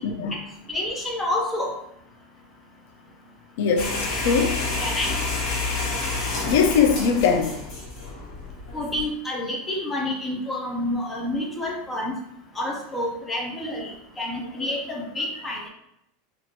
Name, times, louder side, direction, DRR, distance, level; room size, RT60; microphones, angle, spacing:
voice 1, 0.0-0.3 3.6-4.6 6.5-7.5, left 6 dB, 70° left, 5 dB, 0.6 m, -21 dB
voice 2, 0.7-1.7 4.8-5.1 8.7-12.1 12.6-15.7, left 1 dB, 10° left, -1 dB, 0.7 m, -28 dB
sound 1, 3.8-9.0, left 3 dB, 45° left, 1.5 m, -29 dB
4.4 x 2.6 x 2.9 m, 0.78 s
supercardioid pair, 155°, 0 cm